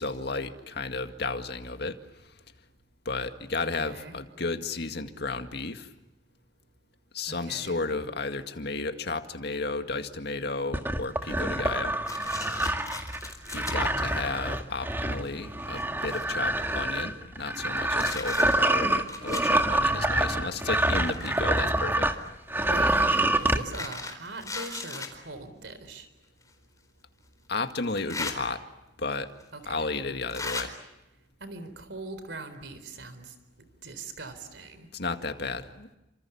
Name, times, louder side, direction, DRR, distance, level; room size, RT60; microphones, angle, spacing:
voice 1, 0.0-2.0 3.1-5.9 7.1-12.0 13.5-22.1 27.5-28.6 29.0-29.3 29.7-30.7 34.9-35.9, left 3 dB, 60° left, 7 dB, 2.0 m, -33 dB
voice 2, 3.6-4.2 7.3-7.8 13.6-14.1 20.5-20.6 22.7-26.1 29.5-29.8 31.4-33.3 33.8-34.9, right 3 dB, 75° right, 11 dB, 4.0 m, -41 dB
sound 1, 10.7-22.2 22.5-23.6, right 1 dB, 10° right, 1.9 m, -26 dB
sound 2, 12.1-13.7 14.5-14.6 15.2-15.3 15.6-17.0 17.5-19.5 20.5-21.6 22.6-25.1 26.4-26.5 27.8-28.4 29.4-29.5 30.3-30.6, left 4 dB, 20° left, 4.2 m, -38 dB
30.0 x 27.0 x 7.2 m, 0.92 s
head